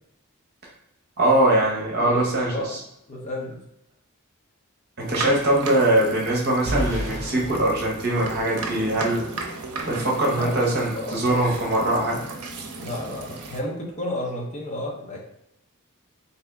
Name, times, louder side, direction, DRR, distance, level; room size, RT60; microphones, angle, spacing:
voice 1, 1.2-2.8 5.0-9.3 9.9-12.2, right 1 dB, 45° right, -2 dB, 0.9 m, -22 dB
voice 2, 2.0-2.8 3.1-3.6 10.3-11.5 12.8-15.2, left 1 dB, 30° left, -2 dB, 0.8 m, -32 dB
sound 1, 5.0-13.6, right 3 dB, 85° right, 0.6 m, -35 dB
sound 2, 6.7-8.8, equal, 30° right, 1.3 m, -31 dB
3.5 x 2.8 x 3.5 m, 0.81 s
head